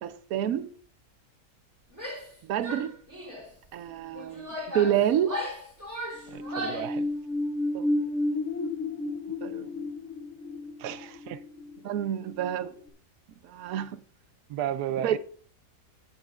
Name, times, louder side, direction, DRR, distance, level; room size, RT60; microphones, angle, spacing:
voice 1, 0.0-0.7 2.4-2.9 3.7-5.4 7.7-7.9 9.4-9.7 11.8-12.7 13.4-14.0 15.0-15.2, right 10 dB, 70° right, 1.1 m, -28 dB
Female speech woman speaking / Yell, 1.9-2.3 2.6-3.5 4.1-6.9, equal, 10° right, 3.2 m, -36 dB
sound 1, 6.2-12.5 12.9-13.0, left 2 dB, 55° left, 1.0 m, -32 dB
voice 2, 6.3-7.1 10.8-11.4 14.5-15.2, right 10 dB, 85° right, 1.2 m, -33 dB
16.5 x 7.1 x 2.4 m
omnidirectional pair, 1.7 m